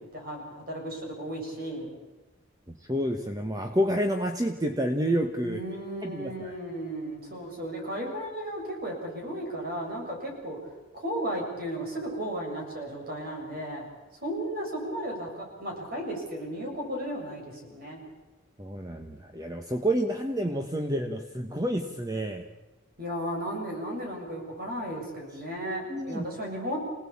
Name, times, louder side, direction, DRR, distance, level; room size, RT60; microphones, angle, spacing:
voice 1, 0.1-1.9 5.4-10.6 10.9-13.8 14.2-18.0 23.0-26.8, right 1 dB, 45° right, 0 dB, 7.3 m, -34 dB
voice 2, 2.7-5.6 6.0-6.5 18.6-22.5 25.9-26.2, equal, 20° right, 5 dB, 1.2 m, -29 dB
28.0 x 18.0 x 8.7 m, 1.1 s
head